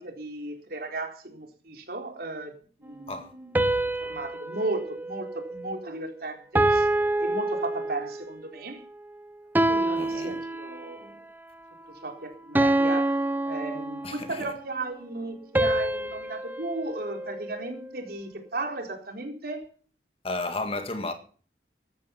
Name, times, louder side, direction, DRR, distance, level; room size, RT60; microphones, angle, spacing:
voice 1, 0.0-2.5 2.8-3.6 4.0-6.9 7.2-8.8 9.7-11.2 11.9-13.2 13.4-19.6, right 2 dB, 60° right, 4.0 m, -35 dB
sound 1, 3.6-6.0 6.6-8.3 9.6-11.1 12.6-14.4 15.6-17.9, right 1 dB, 10° right, 0.6 m, -27 dB
voice 2, 10.0-10.4 14.0-14.5 20.2-21.1, left 2 dB, 35° left, 2.0 m, -33 dB
15.5 x 12.5 x 5.8 m
head